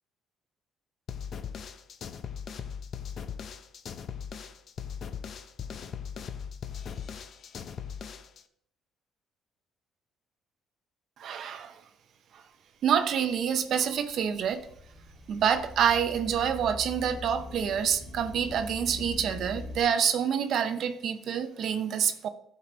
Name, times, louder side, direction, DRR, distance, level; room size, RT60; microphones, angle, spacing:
sound 1, 1.1-8.4, left 7 dB, 50° left, 0.6 m, -39 dB
voice 1, 11.2-11.8 12.3-12.4 12.8-14.7 15.3-22.3, right 8 dB, 60° right, 0.6 m, -27 dB
sound 2, 13.0-19.8, left 2 dB, ahead, 1.4 m, -43 dB
11.0 x 4.7 x 3.9 m
cardioid pair, 110°, 0 cm